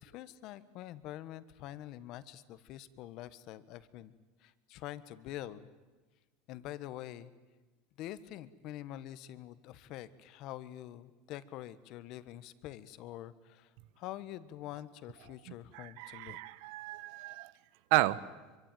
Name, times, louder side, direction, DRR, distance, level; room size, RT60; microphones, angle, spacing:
voice 1, 0.0-4.1 4.4-5.7 6.5-7.3 8.0-16.4, left 13 dB, 45° left, 16 dB, 1.3 m, -46 dB
voice 2, 15.7-17.5 17.9-18.2, right 18 dB, 60° right, 18 dB, 1.0 m, -32 dB
25.5 x 24.0 x 9.2 m, 1.3 s
supercardioid pair, 160°, 0 cm